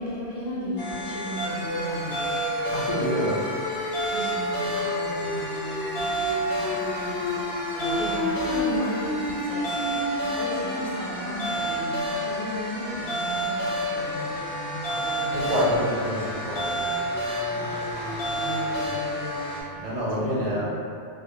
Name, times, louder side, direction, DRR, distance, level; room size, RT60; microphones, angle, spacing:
voice 1, 0.0-3.3 4.1-10.0 10.3-15.5 15.8-15.9 17.5-19.7 20.1-20.6, equal, 50° left, -7 dB, 0.5 m, -35 dB
sound 1, 0.8-19.6, equal, 80° left, 0.9 m, -29 dB
voice 2, 2.7-3.4 15.3-17.0 19.8-20.6, equal, 45° right, -7 dB, 0.5 m, -27 dB
2.3 x 2.1 x 2.8 m, 2.4 s
omnidirectional pair, 1.1 m